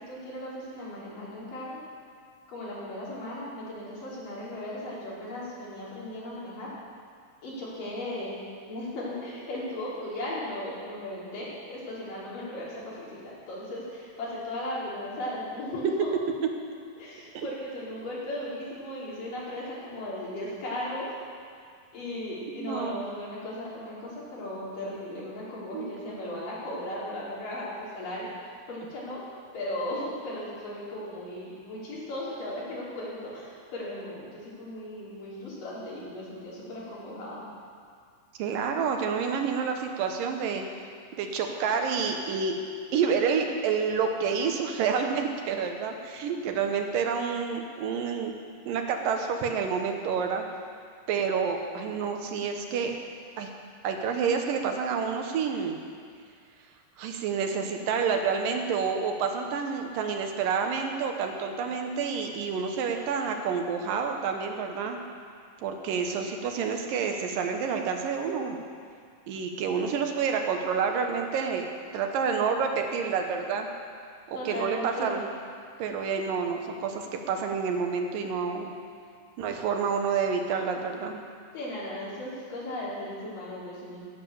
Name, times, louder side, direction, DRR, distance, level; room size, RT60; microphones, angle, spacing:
voice 1, 0.1-1.7 2.5-6.7 7.4-8.4 8.7-16.1 17.0-21.1 21.9-29.2 29.5-37.4 74.3-75.1 81.5-84.0, left 1 dB, 70° left, -7 dB, 5.1 m, -36 dB
voice 2, 22.5-22.9 25.7-25.9 38.4-40.7 41.2-42.6 42.9-48.3 48.7-50.4 51.1-52.9 53.4-53.5 53.8-55.8 57.0-65.0 65.6-68.6 69.3-71.7 71.9-73.7 74.3-75.3 75.8-78.7 79.4-81.2, right 6 dB, 80° right, 4 dB, 2.7 m, -28 dB
17.0 x 7.3 x 7.1 m, 2.2 s
omnidirectional pair, 3.9 m